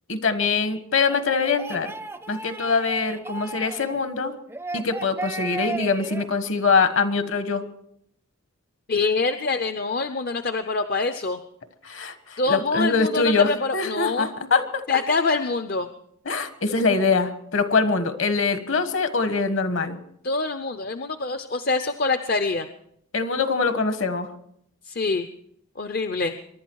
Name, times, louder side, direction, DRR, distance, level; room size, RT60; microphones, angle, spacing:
voice 1, 0.1-1.9 2.3-4.3 4.7-7.6 11.8-14.8 16.2-20.0 23.1-24.3, left 4 dB, 60° left, 10 dB, 1.4 m, -23 dB
sound 1, 1.1-4.0 4.5-6.3, right 2 dB, 10° right, 0.5 m, -34 dB
voice 2, 8.9-11.4 12.4-14.3 14.9-15.9 20.2-22.7 24.9-25.3 25.8-26.3, left 3 dB, 40° left, 9 dB, 0.6 m, -25 dB
24.0 x 11.5 x 4.7 m, 0.71 s
head